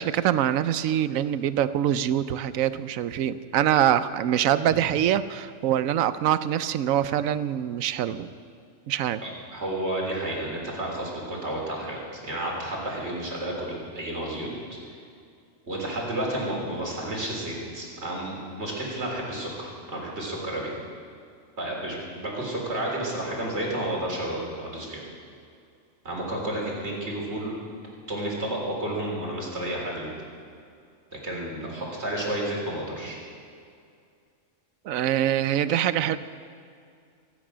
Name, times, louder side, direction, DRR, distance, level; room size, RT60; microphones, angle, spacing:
voice 1, 0.0-8.3 8.9-9.2 34.8-36.2, right 10 dB, 85° right, 14 dB, 1.0 m, -24 dB
voice 2, 9.2-14.5 15.7-20.7 21.6-25.0 26.0-27.6 28.1-30.1 31.2-33.2, right 1 dB, 55° right, -3 dB, 3.9 m, -31 dB
24.0 x 9.5 x 6.2 m, 2.4 s
omnidirectional pair, 1.4 m